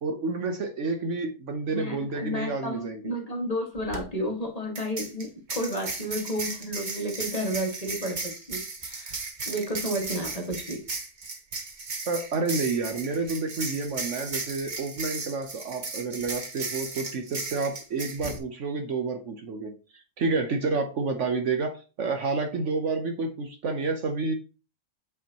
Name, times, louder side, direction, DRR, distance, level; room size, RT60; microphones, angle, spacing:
voice 1, 0.0-3.1 12.1-24.3, right 3 dB, 60° right, 6 dB, 1.1 m, -29 dB
voice 2, 1.7-10.8, equal, 25° left, 0 dB, 1.8 m, -32 dB
sound 1, 3.8-4.0 4.7-18.4, right 3 dB, 35° right, 1.2 m, -36 dB
8.3 x 6.0 x 2.9 m, 0.33 s
omnidirectional pair, 1.6 m